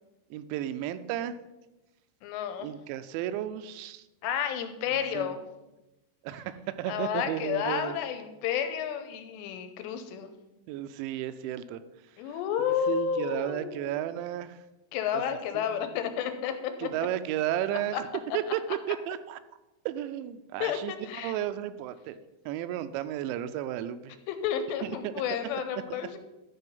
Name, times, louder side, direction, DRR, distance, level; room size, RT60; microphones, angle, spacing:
voice 1, 0.3-1.3 2.6-4.0 5.1-5.3 6.2-8.0 10.7-11.8 12.9-14.6 15.1-15.2 15.5-15.9 16.8-18.0 18.3-18.6 18.9-19.4 19.9-22.2 22.5-24.2 24.8-25.1, right 12 dB, 85° right, 11 dB, 2.8 m, -33 dB
voice 2, 2.2-2.7 4.2-5.4 6.9-10.3 12.2-14.0 14.9-16.9 17.9-18.0 20.6-21.3 24.3-26.2, left 8 dB, 80° left, 8 dB, 2.7 m, -31 dB
12.5 x 4.9 x 5.4 m, 1.0 s
omnidirectional pair, 5.1 m